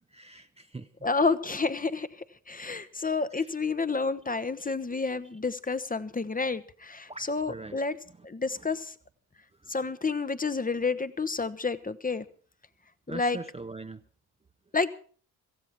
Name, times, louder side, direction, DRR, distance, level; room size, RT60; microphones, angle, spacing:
voice 1, 0.1-0.9 2.7-2.9 7.1-7.8 13.1-14.0, right 3 dB, 15° right, 8 dB, 0.8 m, -42 dB
voice 2, 1.0-8.0 8.2-8.9 9.7-12.2 13.1-13.4 14.7-14.9, left 4 dB, 20° left, 13 dB, 1.0 m, -30 dB
16.5 x 15.0 x 4.5 m, 0.43 s
hypercardioid pair, 50°, 44 cm